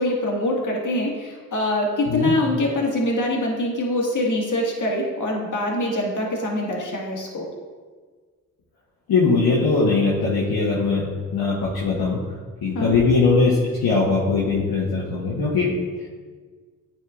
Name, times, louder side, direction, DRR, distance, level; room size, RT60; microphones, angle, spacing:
voice 1, 0.0-7.5 12.7-12.9, left 1 dB, 50° left, -1 dB, 1.8 m, -24 dB
voice 2, 9.1-11.0 11.3-12.2 12.6-15.7, left 4 dB, 65° left, -5 dB, 1.2 m, -20 dB
9.3 x 4.4 x 2.5 m, 1.5 s
hypercardioid pair, 40°, 40 cm